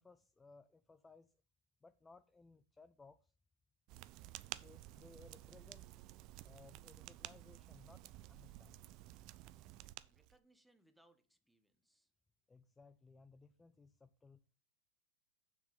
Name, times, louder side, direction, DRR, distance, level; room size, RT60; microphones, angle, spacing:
voice 1, 0.0-1.3 1.8-3.3 4.6-5.9 6.4-8.9 12.5-14.4, left 4 dB, 15° left, 0.4 m, -62 dB
sound 1, 3.9-10.4, right 16 dB, 45° right, 0.4 m, -53 dB
voice 2, 10.0-12.1, right 1 dB, 5° right, 1.1 m, -72 dB
7.1 x 6.0 x 5.4 m
hypercardioid pair, 100°, 0 cm